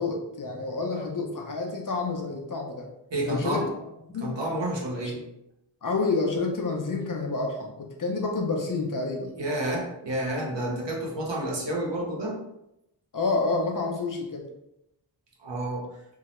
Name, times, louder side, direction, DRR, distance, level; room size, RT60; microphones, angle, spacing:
voice 1, 0.0-2.8 3.2-3.7 4.1-4.4 5.0-5.1 5.8-9.3 13.1-14.5, left 3 dB, 45° left, 1 dB, 0.5 m, -29 dB
voice 2, 3.1-3.7 4.2-5.2 9.4-12.4 15.4-15.8, right 1 dB, 70° right, -2 dB, 0.7 m, -30 dB
2.2 x 2.0 x 2.9 m, 0.86 s
wide cardioid pair, 50°, 45 cm